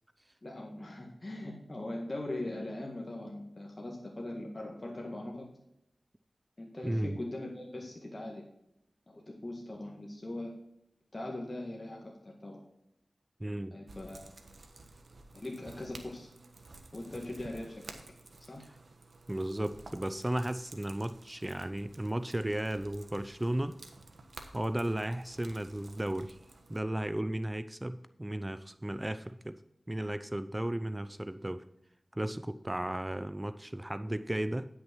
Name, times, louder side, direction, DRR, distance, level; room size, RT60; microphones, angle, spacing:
voice 1, 0.4-5.5 6.6-8.4 9.1-10.5 11.1-12.6 13.7-14.3 15.3-16.3 16.9-17.8 18.4-18.6 21.3-21.4, left 1 dB, 40° left, -1 dB, 1.8 m, -41 dB
voice 2, 6.8-7.2 13.4-13.8 19.3-23.8 24.5-26.4 26.7-29.6 29.9-31.6 32.1-34.7, right 1 dB, 20° right, 11 dB, 0.5 m, -34 dB
sound 1, 13.9-26.8, right 2 dB, 70° right, 1.3 m, -53 dB
9.9 x 6.4 x 4.5 m, 0.81 s
cardioid pair, 45°, 0 cm